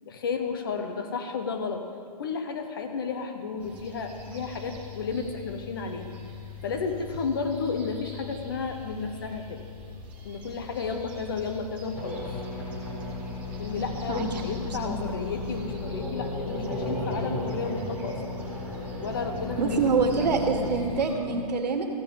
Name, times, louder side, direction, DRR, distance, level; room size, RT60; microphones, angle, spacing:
voice 1, 0.0-1.9 2.2-6.1 6.6-9.6 10.2-12.4 13.6-18.4 19.0-20.8, left 5 dB, 35° left, 6 dB, 0.8 m, -33 dB
sound 1, 3.6-21.2, left 2 dB, 5° right, 0.6 m, -44 dB
sound 2, 11.9-20.9, left 2 dB, 10° left, 1.1 m, -34 dB
voice 2, 14.6-15.0 19.6-21.9, right 4 dB, 85° right, 4 dB, 1.6 m, -26 dB
14.5 x 7.2 x 5.3 m, 2.3 s
hypercardioid pair, 175°, 21 cm